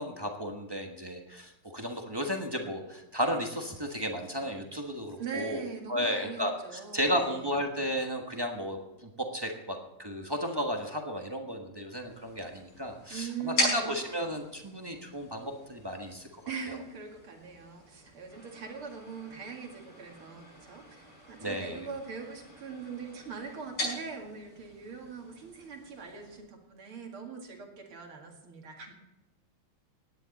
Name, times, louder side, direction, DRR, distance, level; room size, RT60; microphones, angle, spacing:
voice 1, 0.0-16.3 16.7-16.8 21.4-21.9, equal, 15° right, 2 dB, 1.0 m, -34 dB
voice 2, 5.2-7.3 13.1-14.0 16.5-28.9, right 5 dB, 75° right, 2 dB, 3.0 m, -41 dB
sound 1, 12.0-26.4, left 1 dB, 80° left, 6.9 m, -40 dB
16.5 x 10.5 x 4.2 m, 0.92 s
omnidirectional pair, 2.4 m